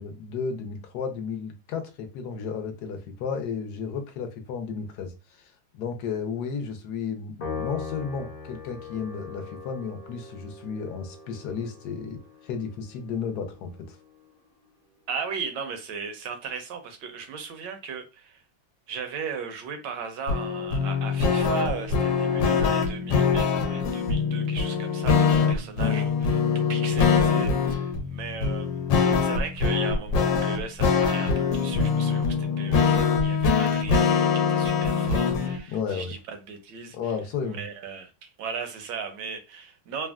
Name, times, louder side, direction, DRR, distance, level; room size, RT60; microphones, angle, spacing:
voice 1, 0.0-14.0 35.7-36.1 36.9-37.6, left 6 dB, 70° left, 1.1 m, -33 dB
Piano, 7.4-14.0, left 4 dB, 50° left, 0.8 m, -40 dB
voice 2, 15.1-18.4 18.9-28.9 29.2-37.0 37.4-40.1, right 6 dB, 80° right, 1.2 m, -36 dB
sound 1, 20.3-35.6, left 5 dB, 90° left, 1.3 m, -23 dB
3.4 x 2.2 x 2.3 m
omnidirectional pair, 2.0 m